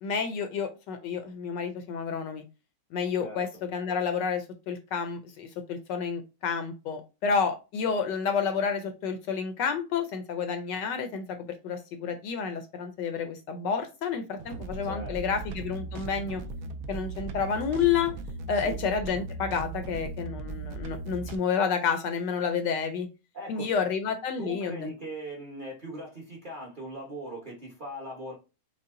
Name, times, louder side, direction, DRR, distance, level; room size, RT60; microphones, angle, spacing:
voice 1, 0.0-2.4 2.9-11.4 11.6-16.4 16.9-18.1 18.5-23.1 23.5-24.9, left 6 dB, 75° left, 8 dB, 1.1 m, -30 dB
sound 1, 14.4-21.4, right 3 dB, 80° right, 0.7 m, -38 dB
voice 2, 14.8-15.4 18.5-18.8 23.3-23.7 24.4-28.3, right 1 dB, 35° right, -3 dB, 0.9 m, -40 dB
5.6 x 2.1 x 3.7 m, 0.29 s
omnidirectional pair, 2.1 m